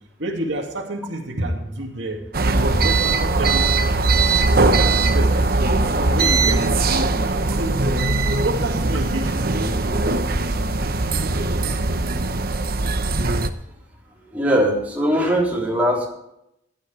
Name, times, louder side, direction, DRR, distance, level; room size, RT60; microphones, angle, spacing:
voice 1, 0.2-2.2 2.6-4.0 4.5-7.8 8.4-10.6, right 1 dB, 70° right, 1 dB, 2.3 m, -29 dB
sound 1, 2.3-13.5, right 3 dB, 50° right, 0.9 m, -20 dB
voice 2, 14.3-16.1, equal, 10° right, -3 dB, 3.4 m, -20 dB
15.0 x 11.5 x 3.3 m, 0.79 s
head